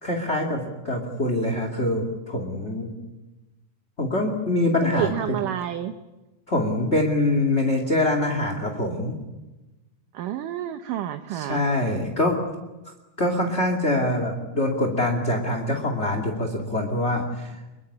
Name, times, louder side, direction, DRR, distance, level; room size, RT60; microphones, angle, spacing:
voice 1, 0.0-2.9 4.0-5.4 6.5-9.1 11.3-12.4 13.2-17.6, left 1 dB, 20° left, 4 dB, 2.1 m, -24 dB
voice 2, 4.8-5.9 10.1-11.6, right 11 dB, 70° right, 8 dB, 2.3 m, -29 dB
26.0 x 22.5 x 8.7 m, 1.1 s
omnidirectional pair, 4.5 m